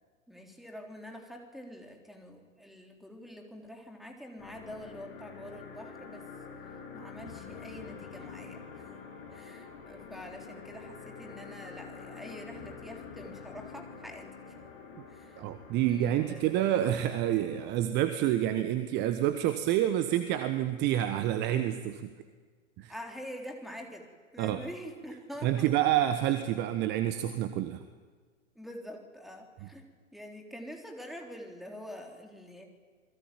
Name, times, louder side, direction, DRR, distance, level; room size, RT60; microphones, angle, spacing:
voice 1, 0.3-6.3 6.9-8.9 9.3-14.3 15.1-15.5 15.9-16.4 22.9-25.7 28.6-32.7, equal, ahead, 3 dB, 3.6 m, -46 dB
sound 1, 4.4-17.7, left 5 dB, 45° left, 7.4 m, -47 dB
voice 2, 15.4-22.1 22.8-22.9 24.4-24.6 25.4-27.8, right 12 dB, 25° right, 10 dB, 1.3 m, -28 dB
28.5 x 21.5 x 9.2 m, 1.5 s
figure-of-eight pair, 110°, 40 cm